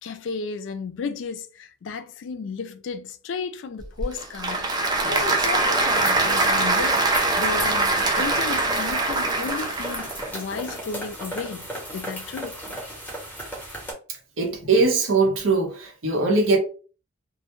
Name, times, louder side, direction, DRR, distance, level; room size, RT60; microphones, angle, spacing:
voice 1, 0.0-12.6, left 5 dB, 65° left, 0.3 m, -34 dB
Applause / Crowd, 3.8-10.3, right 2 dB, 20° right, 0.3 m, -23 dB
sound 1, 5.9-13.9, equal, 10° left, 0.8 m, -35 dB
voice 2, 14.4-16.6, right 3 dB, 80° right, 0.8 m, -21 dB
2.1 x 2.1 x 2.9 m
head